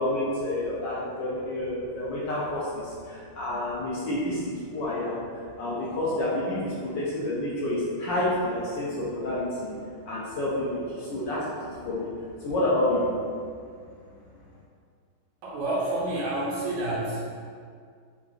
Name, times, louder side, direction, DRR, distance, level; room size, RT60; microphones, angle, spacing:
voice 1, 0.0-5.2 5.6-9.7 10.1-12.1 12.4-13.1, left 1 dB, 75° left, -7 dB, 1.1 m, -29 dB
voice 2, 15.4-17.2, right 1 dB, 75° right, -5 dB, 1.3 m, -29 dB
3.8 x 2.4 x 2.4 m, 2.1 s
omnidirectional pair, 2.3 m